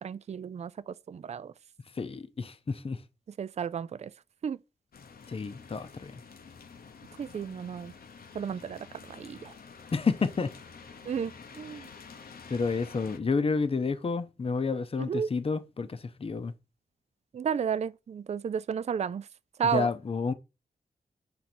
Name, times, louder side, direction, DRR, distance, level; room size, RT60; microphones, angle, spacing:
voice 1, 0.0-1.5 3.4-4.1 4.4-4.6 7.2-7.9 8.3-8.9 9.2-9.5 11.1-11.9 15.1-15.3 17.3-19.2 19.6-19.9, right 7 dB, 45° right, 0.4 m, -32 dB
voice 2, 2.0-3.0 5.3-6.1 9.9-10.6 11.7-11.9 12.5-16.5 19.6-20.3, left 4 dB, 40° left, 0.7 m, -30 dB
sound 1, 4.9-13.2, left 5 dB, 80° left, 0.9 m, -49 dB
8.4 x 3.9 x 6.0 m
wide cardioid pair, 145°, 15 cm